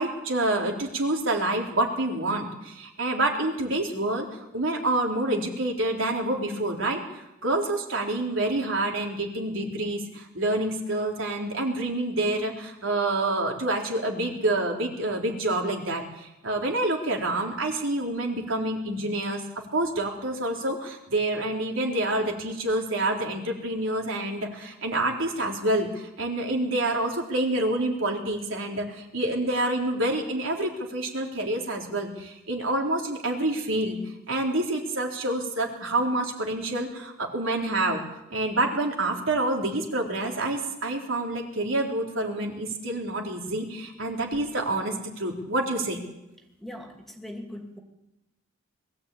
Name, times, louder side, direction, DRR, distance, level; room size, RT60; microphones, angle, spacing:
voice 1, 0.0-4.3 4.5-7.0 7.4-19.4 19.7-34.0 34.3-38.0 38.3-46.0, right 1 dB, 80° right, 0 dB, 3.8 m, -27 dB
voice 2, 46.6-47.8, left 1 dB, ahead, 3 dB, 2.4 m, -40 dB
21.5 x 14.0 x 8.6 m, 0.92 s
head